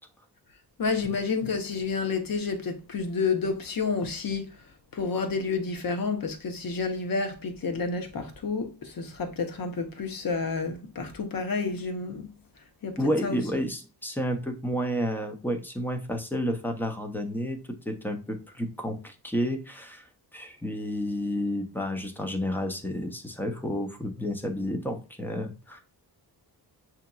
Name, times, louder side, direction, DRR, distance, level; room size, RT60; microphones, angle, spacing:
voice 1, 0.8-4.6 4.9-12.3 12.8-13.4, left 4 dB, 55° left, 0.9 m, -30 dB
voice 2, 12.9-20.1 20.3-25.8, equal, 5° left, 0.6 m, -31 dB
6.3 x 2.9 x 2.3 m
wide cardioid pair, 140°, 41 cm